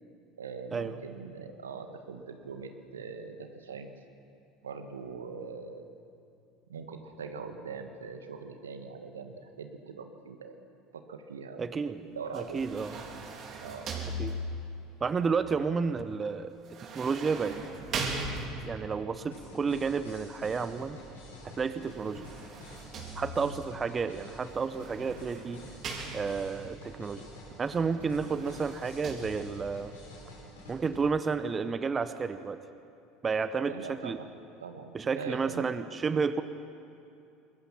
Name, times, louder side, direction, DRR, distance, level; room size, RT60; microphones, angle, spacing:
voice 1, 0.4-3.9 4.6-5.9 6.7-10.5 10.9-12.6 13.6-13.9 33.6-34.3 34.6-35.7, right 5 dB, 85° right, 6 dB, 1.7 m, -42 dB
voice 2, 11.6-12.0 12.3-13.0 14.2-14.3 15.0-16.5 16.9-17.6 17.9-18.2 18.6-21.0 21.4-22.3 23.2-25.7 26.1-27.3 27.6-29.9 30.7-32.6 33.2-34.2 34.9-36.4, right 5 dB, 25° right, 11 dB, 0.9 m, -31 dB
sound 1, 12.3-14.8 16.6-18.9 21.8-23.6 24.6-26.6 28.0-29.2, right 2 dB, 45° right, 3.7 m, -39 dB
sound 2, 19.3-31.0, left 1 dB, 80° left, 6.7 m, -48 dB
25.0 x 21.5 x 5.9 m, 2.6 s
hypercardioid pair, 70°, 0 cm